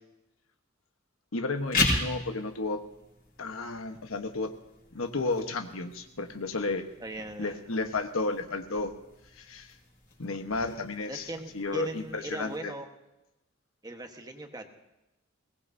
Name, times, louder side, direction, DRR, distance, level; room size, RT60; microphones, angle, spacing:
voice 1, 1.3-2.8 3.4-4.5 4.9-6.8 7.4-8.9 9.4-9.7 10.2-11.3 11.5-12.7, left 3 dB, 90° left, 6 dB, 1.2 m, -32 dB
sound 1, 1.6-12.6, left 2 dB, 45° left, 5.1 m, -37 dB
voice 2, 7.0-7.6 11.1-12.9 13.8-14.7, right 2 dB, 20° right, 4 dB, 1.3 m, -39 dB
21.5 x 18.5 x 2.8 m, 0.95 s
head